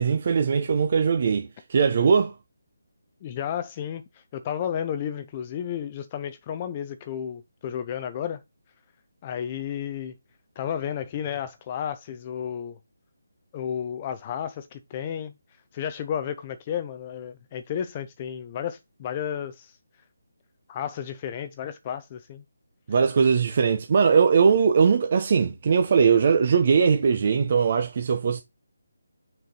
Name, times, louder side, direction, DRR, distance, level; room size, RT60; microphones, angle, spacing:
voice 1, 0.0-2.3 22.9-28.4, right 6 dB, 40° right, 0.8 m, -20 dB
voice 2, 3.2-8.4 9.2-10.1 10.6-12.8 13.5-15.3 15.7-19.8 20.7-22.4, left 9 dB, 20° left, 0.6 m, -32 dB
6.4 x 4.4 x 5.3 m
hypercardioid pair, 170°, 0 cm